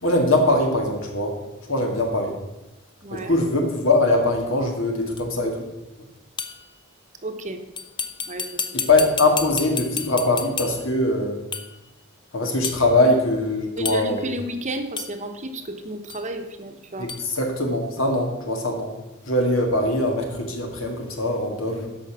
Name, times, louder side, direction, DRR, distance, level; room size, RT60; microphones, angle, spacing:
voice 1, 0.0-1.3 1.7-2.3 3.1-5.7 8.7-11.4 12.3-14.2 17.0-18.9 19.3-21.9, left 2 dB, 70° left, 3 dB, 2.1 m, -22 dB
voice 2, 3.0-3.4 7.2-7.6 8.3-8.7 13.8-17.1, right 1 dB, 35° right, 6 dB, 1.0 m, -32 dB
sound 1, 5.2-5.3 6.4-6.7 7.8-10.9 11.5-11.8 12.6-12.9 13.8-14.3 15.0-15.2 16.1-16.2 17.1-17.3, left 6 dB, 25° left, 0.6 m, -31 dB
12.5 x 5.3 x 6.3 m, 1.0 s
head